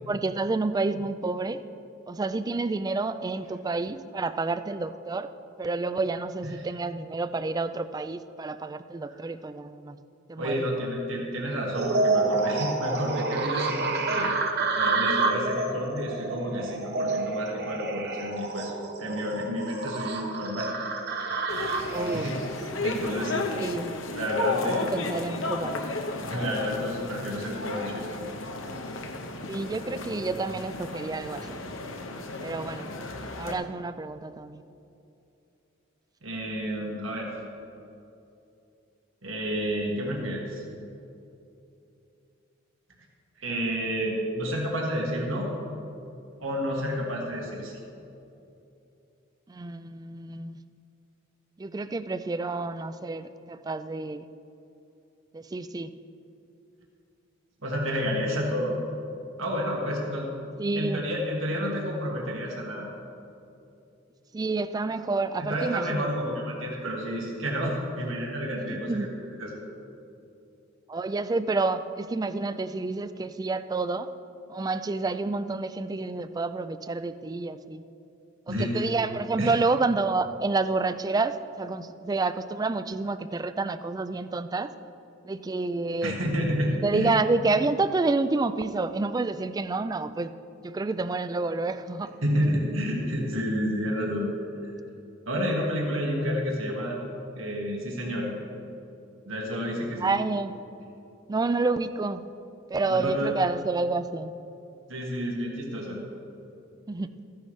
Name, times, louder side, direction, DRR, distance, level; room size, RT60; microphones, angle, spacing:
voice 1, 0.1-1.6 2.1-5.3 5.6-10.0 10.3-10.8 21.9-22.3 23.6-24.0 24.7-26.0 29.5-31.6 32.4-33.0 33.4-34.6 49.5-50.6 51.6-54.3 55.3-55.9 60.6-61.0 64.3-66.0 68.7-69.1 70.9-74.1 74.5-77.8 78.5-84.7 85.2-86.1 86.8-90.3 90.6-92.1 100.0-100.6 101.3-102.2 102.7-104.3 106.9-107.1, right 3 dB, 20° right, 12 dB, 0.3 m, -29 dB
voice 2, 10.4-14.3 14.7-18.7 19.0-20.7 22.1-22.3 22.8-23.5 24.2-24.9 26.2-28.1 36.2-37.4 39.2-40.6 43.4-45.5 46.4-47.8 57.6-58.8 59.4-60.3 60.7-62.9 65.4-69.1 69.4-69.6 78.5-78.9 79.4-79.5 86.0-87.1 92.2-94.3 94.6-94.7 95.2-97.0 97.3-98.3 99.2-100.1 102.9-103.3 104.9-106.0, equal, 75° right, -2 dB, 1.7 m, -30 dB
sound 1, 11.7-23.5, right 3 dB, 55° right, 0.9 m, -29 dB
sound 2, 21.5-33.5, left 2 dB, 80° left, 1.0 m, -33 dB
14.5 x 10.5 x 3.2 m, 2.8 s
head